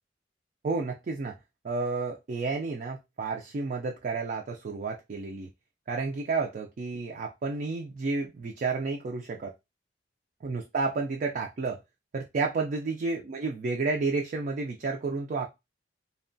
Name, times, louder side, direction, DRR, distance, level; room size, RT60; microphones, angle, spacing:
voice 1, 0.6-1.4 1.6-5.5 5.9-9.5 10.4-11.8 12.1-15.5, right 4 dB, 45° right, 1 dB, 0.3 m, -31 dB
2.8 x 2.2 x 2.5 m, 0.23 s
head